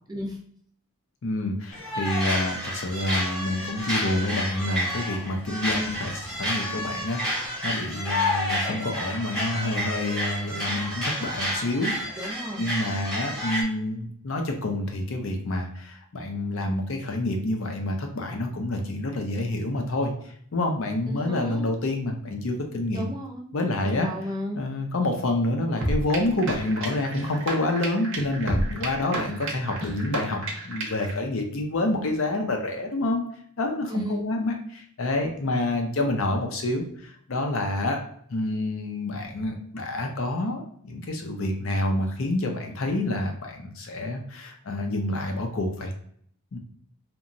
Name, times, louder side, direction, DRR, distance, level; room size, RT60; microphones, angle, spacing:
voice 1, 1.2-12.3 12.6-20.1 20.5-23.1 23.5-24.1 24.5-30.4 30.6-33.2 33.6-38.0 38.3-45.9 46.5-46.6, left 2 dB, 60° left, 3 dB, 0.5 m, -28 dB
sound 1, 1.7-13.6, equal, 5° left, 0.8 m, -30 dB
voice 2, 12.2-12.7 21.1-21.7 22.9-23.5 23.8-24.6 33.9-34.2, equal, 15° right, -1 dB, 0.4 m, -33 dB
sound 2, 25.8-31.1, right 1 dB, 60° right, 0.6 m, -31 dB
2.8 x 2.1 x 2.5 m, 0.63 s
head